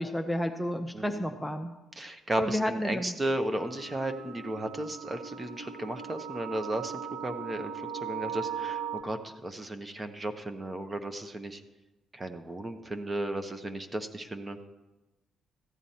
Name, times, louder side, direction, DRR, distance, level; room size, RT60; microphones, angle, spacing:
voice 1, 0.0-1.7 2.4-3.1, equal, 5° left, 4 dB, 0.6 m, -31 dB
voice 2, 2.0-6.9 7.2-11.6 12.1-14.6, right 1 dB, 25° right, 8 dB, 0.9 m, -34 dB
sound 1, 3.6-9.0, right 8 dB, 90° right, 1.4 m, -38 dB
14.5 x 8.9 x 4.3 m, 1.1 s
cardioid pair, 90°, 0 cm